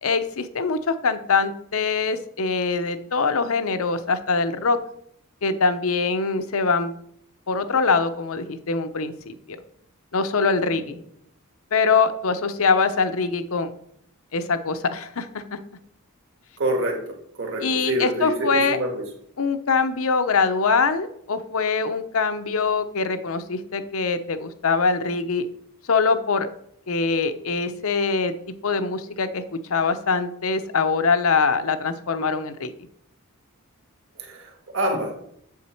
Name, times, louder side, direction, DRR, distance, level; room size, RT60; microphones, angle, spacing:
voice 1, 0.0-4.8 5.4-6.9 7.5-9.6 10.1-11.0 11.7-13.7 14.3-15.6 17.6-18.8 19.4-25.5 25.9-26.5 26.9-28.3 28.6-32.7, left 4 dB, 65° left, 10 dB, 0.7 m, -23 dB
voice 2, 16.6-17.0 17.4-19.0 34.2-35.1, right 1 dB, 60° right, 2 dB, 1.7 m, -26 dB
7.2 x 7.1 x 4.4 m, 0.71 s
head